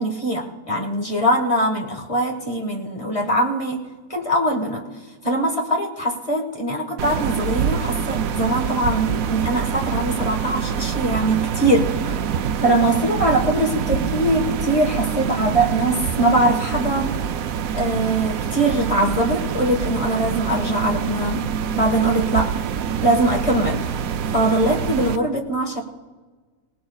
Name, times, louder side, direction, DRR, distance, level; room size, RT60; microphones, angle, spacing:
voice 1, 0.0-4.9 5.2-12.2 12.6-17.2 17.7-21.5 21.8-22.5 23.0-23.9 24.3-25.8, right 1 dB, 20° left, 1 dB, 1.5 m, -22 dB
sound 1, 7.0-25.2, right 8 dB, 70° right, 1.0 m, -25 dB
25.5 x 18.5 x 2.4 m, 1.4 s
omnidirectional pair, 1.6 m